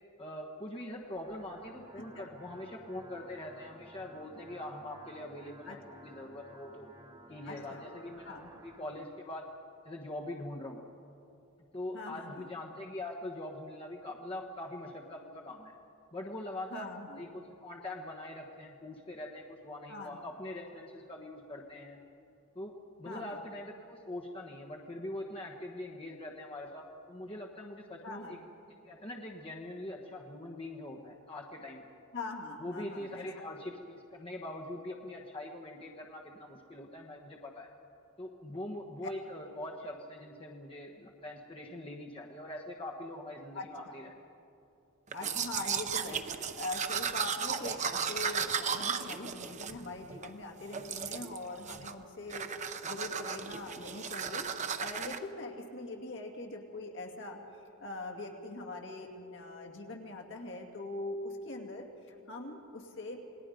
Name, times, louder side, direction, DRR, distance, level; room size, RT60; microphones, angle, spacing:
voice 1, 0.2-6.9 7.3-8.4 8.6-9.5 9.8-10.8 11.7-15.7 16.1-22.0 22.5-28.4 28.7-31.9 32.6-37.7 38.2-44.1, left 1 dB, 25° left, -1 dB, 1.3 m, -43 dB
sound 1, 0.9-8.9, right 1 dB, 20° right, 1.2 m, -55 dB
voice 2, 2.0-2.3 5.6-6.0 7.5-7.8 8.3-8.5 11.9-12.5 16.7-17.2 19.9-20.2 23.0-23.4 28.0-28.4 32.1-33.5 43.5-43.9 45.1-52.5 52.8-57.4 57.8-63.2, left 2 dB, 60° left, 1 dB, 2.5 m, -42 dB
Domestic sounds home sounds, 45.1-50.3 50.7-51.4 51.7-52.0 52.3-55.2, right 6 dB, 35° right, 0.7 m, -35 dB
28.0 x 19.5 x 5.2 m, 2.6 s
head